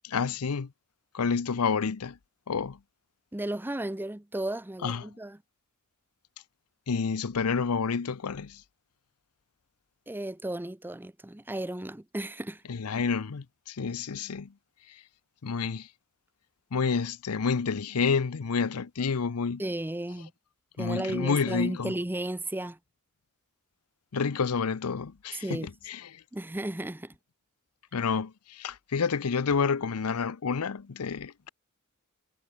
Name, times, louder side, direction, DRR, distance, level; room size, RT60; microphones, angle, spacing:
voice 1, 0.1-0.7 1.1-2.2 2.5-2.8 4.8-5.1 6.9-8.6 12.7-14.5 15.4-15.9 16.7-19.6 20.8-21.9 24.1-26.0 27.9-31.5, left 5 dB, 90° left, 0.7 m, -29 dB
voice 2, 3.3-5.4 10.1-12.6 19.6-20.3 20.8-22.8 25.3-25.7 26.3-27.1, right 1 dB, 10° right, 0.7 m, -34 dB
head